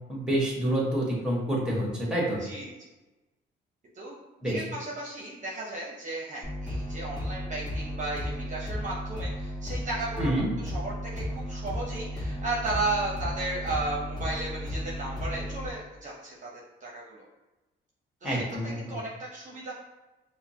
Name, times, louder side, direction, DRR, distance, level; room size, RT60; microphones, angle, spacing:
voice 1, 0.1-2.4 4.4-4.6 10.2-10.5 18.2-19.0, right 1 dB, 5° right, -4 dB, 1.5 m, -28 dB
voice 2, 2.4-2.9 3.9-4.2 4.4-10.3 10.6-16.5 16.8-17.2 18.2-18.4 18.8-19.7, right 2 dB, 40° right, -4 dB, 0.8 m, -34 dB
sound 1, 6.4-15.7, equal, 20° left, 1.4 m, -34 dB
5.5 x 2.1 x 2.8 m, 1.1 s
cardioid pair, 90°, 20 cm